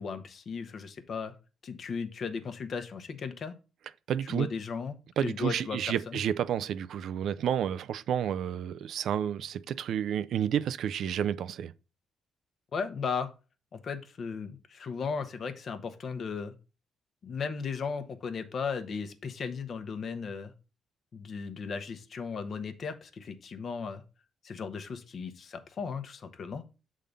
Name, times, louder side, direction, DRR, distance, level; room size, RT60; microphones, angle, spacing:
voice 1, 0.0-1.3 1.6-3.5 4.2-4.9 5.2-6.2 12.7-13.3 13.7-16.5 17.2-20.5 21.1-24.0 24.4-26.6, left 5 dB, 50° left, 0.8 m, -36 dB
voice 2, 4.1-4.5 5.2-11.7, right 9 dB, 70° right, 0.3 m, -30 dB
6.7 x 3.7 x 5.1 m
cardioid pair, 90°, 0 cm